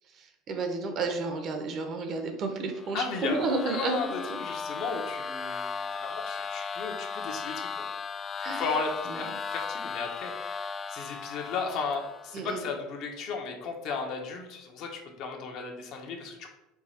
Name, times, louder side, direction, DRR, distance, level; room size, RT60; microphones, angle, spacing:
voice 1, 0.2-4.0 4.3-4.4 8.4-8.7 9.1-9.4 12.3-12.6, right 3 dB, 45° right, 5 dB, 0.8 m, -32 dB
sound 1, 2.7-12.4, left 5 dB, 35° left, 0.3 m, -36 dB
voice 2, 2.9-3.4 3.6-7.8 8.5-16.5, left 5 dB, 60° left, 2 dB, 0.9 m, -35 dB
4.7 x 2.3 x 4.2 m, 0.96 s
supercardioid pair, 100°, 0 cm